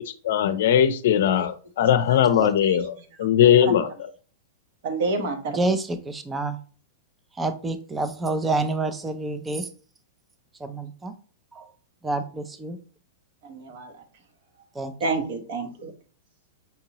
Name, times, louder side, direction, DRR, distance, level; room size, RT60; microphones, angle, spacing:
voice 1, 0.2-2.9 3.2-4.1, left 9 dB, 65° left, 0.5 m, -20 dB
voice 2, 4.8-5.6 13.5-13.9 15.0-15.9, right 3 dB, 50° right, 0.9 m, -28 dB
voice 3, 5.5-6.6 7.4-9.7 10.6-11.1 11.5-11.6 12.0-12.8 14.8-14.9, right 2 dB, 10° right, 0.4 m, -28 dB
5.4 x 2.8 x 2.9 m
supercardioid pair, 160°, 0 cm